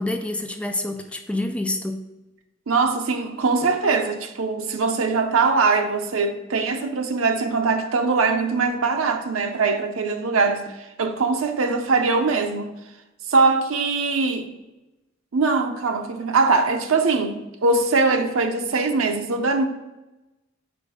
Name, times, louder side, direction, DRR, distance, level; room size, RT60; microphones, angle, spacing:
voice 1, 0.0-2.0, left 1 dB, 5° left, 0.3 m, -27 dB
voice 2, 2.7-12.7 13.3-14.5 15.3-19.7, right 4 dB, 85° right, 0.6 m, -22 dB
5.1 x 4.4 x 4.8 m
head